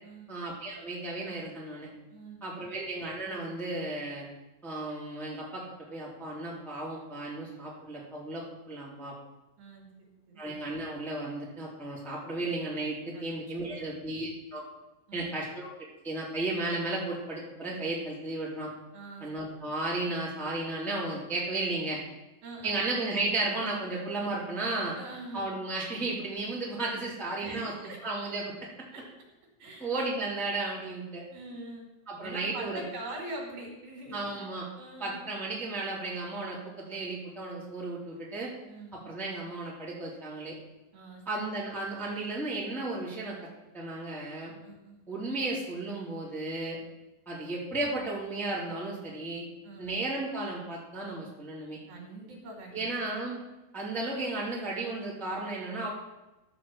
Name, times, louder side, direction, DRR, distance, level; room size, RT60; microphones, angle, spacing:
voice 1, 0.3-1.9 2.4-4.2 4.6-5.6 5.9-9.1 10.4-14.6 15.1-15.7 16.0-18.7 19.2-22.0 22.6-25.0 25.3-28.5 29.8-31.2 32.1-32.8 34.1-34.6 35.0-38.5 38.9-40.6 41.2-43.4 43.7-44.5 45.1-46.8 47.3-49.4 49.8-51.8 52.7-53.4 53.7-55.9, right 2 dB, ahead, -6 dB, 2.4 m, -34 dB
voice 2, 2.1-2.7 9.6-10.4 13.1-13.2 13.6-13.9 15.1-15.4 18.9-19.3 22.4-22.9 25.0-25.5 27.4-28.0 28.9-29.0 29.6-29.9 31.3-31.9 32.2-34.4 34.8-35.2 38.7-39.1 40.9-41.2 44.6-45.0 49.6-50.0 51.9-52.9, right 2 dB, 70° right, 1 dB, 4.0 m, -43 dB
12.5 x 6.0 x 7.4 m, 1.0 s
omnidirectional pair, 4.6 m